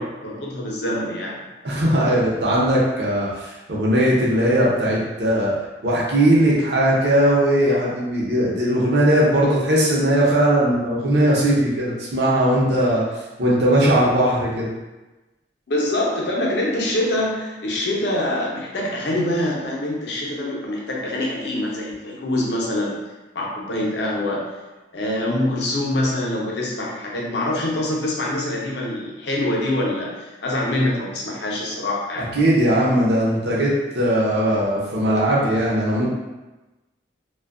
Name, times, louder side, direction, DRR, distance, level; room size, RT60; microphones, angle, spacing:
voice 1, 0.0-1.4 15.7-22.9 23.3-24.5 24.9-32.3, left 1 dB, 75° left, -3 dB, 0.6 m, -25 dB
voice 2, 1.6-5.5 5.8-13.0 13.4-14.7 32.3-36.1, right 1 dB, 70° right, -5 dB, 0.6 m, -19 dB
2.5 x 2.2 x 2.4 m, 1.1 s
head